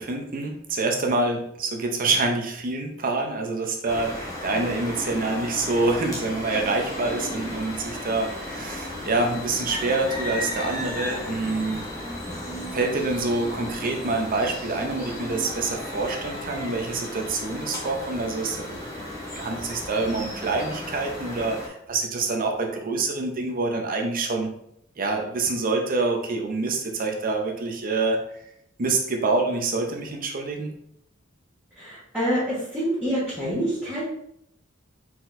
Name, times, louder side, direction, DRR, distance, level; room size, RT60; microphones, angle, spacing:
voice 1, 0.0-11.8 12.7-24.5 25.0-28.2 28.8-30.7, right 3 dB, 45° right, 3 dB, 0.7 m, -26 dB
sound 1, 3.9-21.7, left 1 dB, 15° left, 0.9 m, -34 dB
voice 2, 31.8-34.0, equal, 10° right, -11 dB, 1.4 m, -26 dB
4.4 x 4.0 x 2.6 m, 0.72 s
head